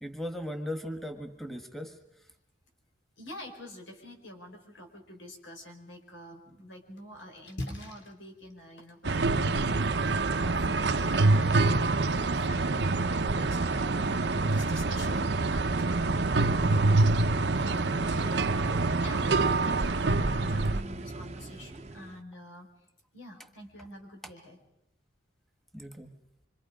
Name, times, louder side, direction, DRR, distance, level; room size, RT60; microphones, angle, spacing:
voice 1, 0.0-2.0 25.7-26.2, equal, ahead, 4 dB, 1.5 m, -38 dB
voice 2, 3.2-22.7 23.1-24.6, left 1 dB, 90° left, 3 dB, 5.1 m, -47 dB
Splash splatter, 6.5-19.5, left 1 dB, 70° left, 3.1 m, -50 dB
sound 1, 9.0-20.8, right 3 dB, 65° right, 0.8 m, -26 dB
sound 2, 10.9-22.2, right 2 dB, 35° right, 0.8 m, -42 dB
26.5 x 25.5 x 5.1 m, 0.82 s
head